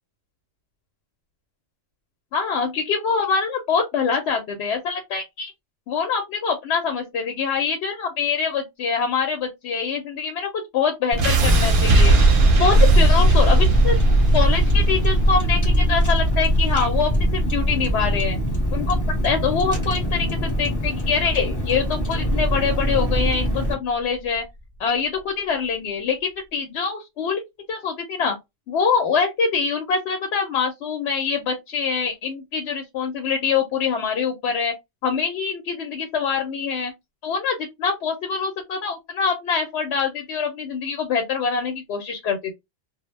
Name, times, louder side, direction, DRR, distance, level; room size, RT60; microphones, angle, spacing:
voice 1, 2.3-5.5 5.9-12.1 12.6-13.9 14.3-18.4 18.7-19.0 19.2-24.4 24.8-27.4 27.7-28.4 28.7-34.7 35.0-36.9 37.2-42.5, left 6 dB, 70° left, 0.8 m, -24 dB
Car, 11.1-23.7, equal, 15° left, 0.8 m, -25 dB
sound 1, 11.2-23.2, right 1 dB, 55° right, 0.7 m, -19 dB
2.0 x 2.0 x 3.0 m
omnidirectional pair, 1.3 m